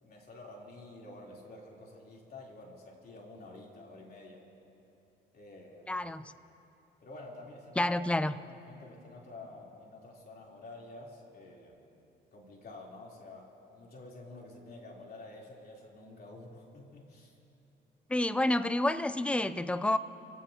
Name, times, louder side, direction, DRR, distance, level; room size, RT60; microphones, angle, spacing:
voice 1, 0.0-4.5 5.3-6.0 7.0-8.1 8.4-11.8 12.3-17.3, left 2 dB, 50° left, -2 dB, 3.6 m, -49 dB
voice 2, 5.9-6.3 7.8-8.4 18.1-20.0, left 1 dB, 5° left, 13 dB, 0.5 m, -29 dB
29.5 x 16.5 x 2.9 m, 2.8 s
cardioid pair, 90°, 20 cm